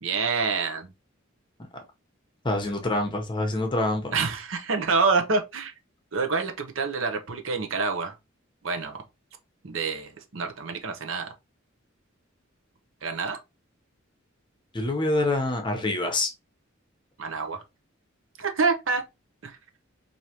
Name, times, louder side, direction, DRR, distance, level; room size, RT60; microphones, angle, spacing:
voice 1, 0.0-0.9 4.1-5.7 6.1-8.1 8.6-9.0 9.6-11.3 13.0-13.4 17.2-17.6 18.4-19.0 19.4-19.6, right 4 dB, 70° right, 0.8 m, -27 dB
voice 2, 2.4-4.1 14.7-16.3, left 2 dB, 25° left, 0.9 m, -26 dB
4.8 x 2.7 x 2.9 m
head